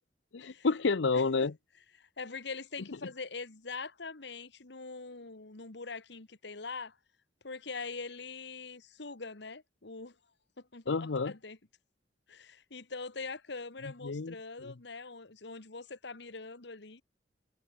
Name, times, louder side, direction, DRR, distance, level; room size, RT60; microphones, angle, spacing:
voice 1, 0.3-1.5 10.9-11.3 14.0-14.3 14.6-14.7, left 4 dB, 85° left, 0.7 m, -29 dB
voice 2, 2.0-7.0 7.4-10.2 10.6-10.9 11.2-11.6 12.3-17.0, left 4 dB, 70° left, 1.7 m, -43 dB
head